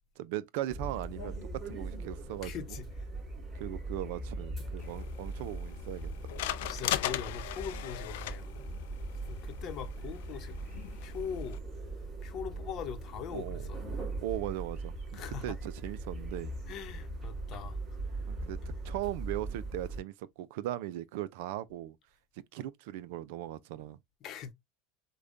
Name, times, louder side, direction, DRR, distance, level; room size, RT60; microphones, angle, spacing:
voice 1, 0.2-2.8 3.5-6.1 8.7-8.8 13.3-13.6 14.2-16.5 18.3-18.6 18.8-22.0 22.5-24.0, right 14 dB, 70° right, 0.4 m, -38 dB
sound 1, 0.7-20.0, right 2 dB, 40° right, 2.8 m, -40 dB
voice 2, 2.4-2.9 6.7-8.7 9.3-10.6 11.0-11.6 12.2-14.0 15.1-15.6 16.7-17.8 24.2-24.5, left 8 dB, 50° left, 0.8 m, -41 dB
sound 2, 4.8-11.6, left 13 dB, 80° left, 0.4 m, -39 dB
4.9 x 2.2 x 2.5 m
supercardioid pair, 110°, 0 cm